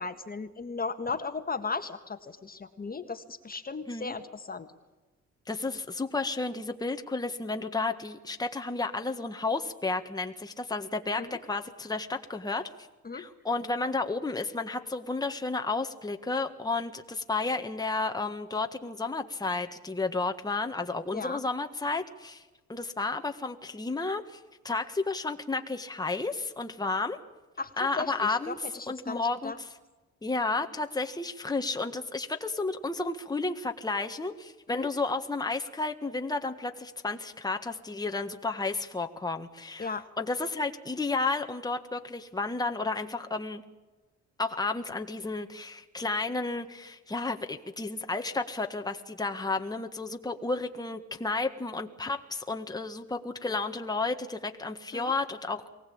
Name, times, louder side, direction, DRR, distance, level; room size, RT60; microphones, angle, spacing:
voice 1, 0.0-4.7 11.2-11.4 13.0-13.3 21.1-21.4 27.6-29.6 34.7-34.9 39.8-40.0 54.9-55.1, left 4 dB, 30° left, 9 dB, 1.7 m, -36 dB
voice 2, 5.5-12.9 13.1-22.4 22.7-27.2 27.8-28.6 28.9-29.7 30.2-43.6 44.4-55.7, left 3 dB, 15° left, 5 dB, 1.7 m, -32 dB
23.5 x 17.5 x 8.7 m, 1.2 s
cardioid pair, 90°, 30 cm